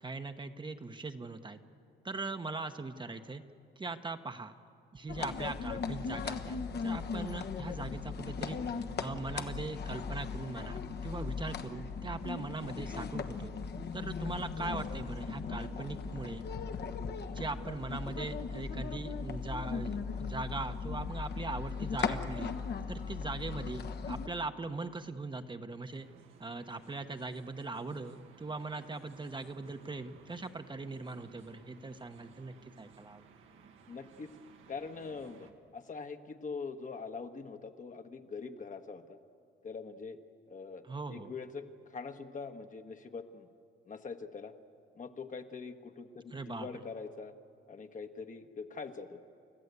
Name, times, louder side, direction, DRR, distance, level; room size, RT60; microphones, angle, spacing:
voice 1, 0.0-1.6 2.0-3.4 3.8-4.5 4.9-6.6 6.8-13.5 13.9-16.4 17.3-22.5 22.9-26.1 26.4-33.3 40.8-41.3 46.3-46.7, right 3 dB, 25° right, 7 dB, 1.0 m, -40 dB
sound 1, 5.1-24.3, left 5 dB, 55° left, 1.3 m, -38 dB
sound 2, 25.9-35.5, right 6 dB, 90° right, 1.8 m, -59 dB
voice 2, 33.9-34.4 34.7-39.2 39.6-40.2 40.5-43.5 43.9-44.5 45.0-47.3 47.7-49.2, left 4 dB, 40° left, 6 dB, 1.3 m, -43 dB
30.0 x 14.0 x 8.2 m, 2.4 s
cardioid pair, 90°, 20 cm